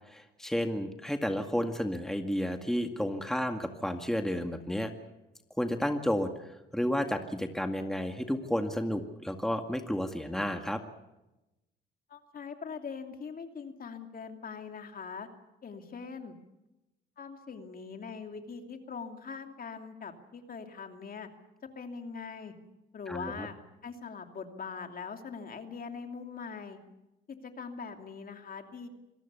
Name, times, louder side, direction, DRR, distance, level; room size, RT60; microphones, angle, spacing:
voice 1, 0.1-4.9 5.6-10.8 23.1-23.5, equal, ahead, 5 dB, 2.0 m, -32 dB
voice 2, 12.1-15.3 15.6-16.3 17.2-21.3 21.8-22.5 22.9-23.6 23.8-26.8 27.3-28.9, left 5 dB, 45° left, 5 dB, 2.8 m, -42 dB
26.5 x 18.0 x 7.0 m, 0.96 s
cardioid pair, 90°, 20 cm